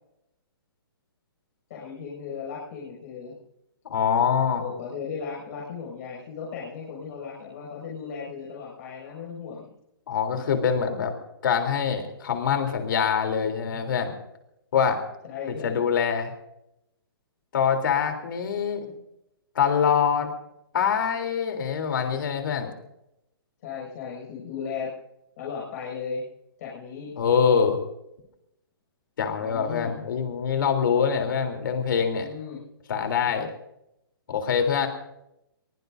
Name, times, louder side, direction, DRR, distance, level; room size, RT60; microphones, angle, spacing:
voice 1, 1.7-3.4 4.5-9.7 10.3-10.5 15.2-15.8 23.6-24.9 25.4-26.2 26.6-27.2 29.3-30.0 32.0-32.6, left 6 dB, 40° left, -5 dB, 6.5 m, -36 dB
voice 2, 3.9-4.6 10.1-11.1 11.4-14.1 14.7-15.0 15.6-16.3 17.5-18.9 19.6-20.3 20.7-22.7 27.2-27.8 29.2-32.3 32.9-33.5 34.3-34.9, left 7 dB, 60° left, 5 dB, 3.5 m, -24 dB
23.0 x 21.5 x 2.7 m, 0.83 s
hypercardioid pair, 165°, 13 cm